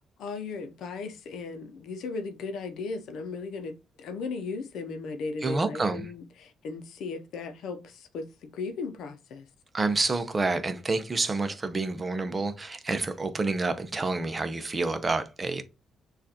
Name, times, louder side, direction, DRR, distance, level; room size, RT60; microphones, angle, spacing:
voice 1, 0.2-3.7 4.0-9.4, left 4 dB, 80° left, 0.7 m, -36 dB
voice 2, 5.4-6.1 9.7-15.6, right 3 dB, 25° right, 0.7 m, -28 dB
6.5 x 2.5 x 2.8 m
cardioid pair, 90°, 0 cm